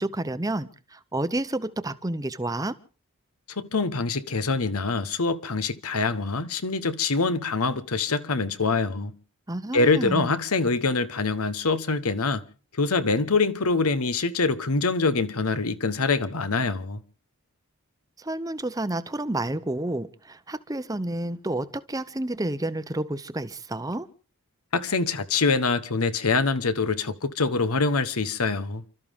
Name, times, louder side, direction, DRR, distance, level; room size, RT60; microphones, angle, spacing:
voice 1, 0.0-2.8 9.5-10.4 18.2-24.1, right 1 dB, 15° right, 0.7 m, -30 dB
voice 2, 3.6-9.1 9.7-12.4 12.8-17.0 24.7-28.8, left 4 dB, 80° left, 1.1 m, -25 dB
29.5 x 13.0 x 3.6 m
head